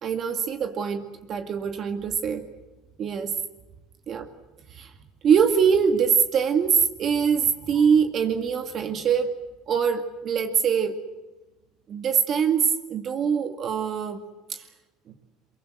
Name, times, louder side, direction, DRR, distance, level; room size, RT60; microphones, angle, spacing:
voice 1, 0.0-2.4 3.0-3.3 4.1-4.3 4.8-4.9 5.2-9.3 9.7-11.0 11.9-14.2 14.5-14.6, right 7 dB, 45° right, 6 dB, 2.2 m, -23 dB
23.5 x 22.5 x 7.9 m, 1.1 s
supercardioid pair, 95°, 0 cm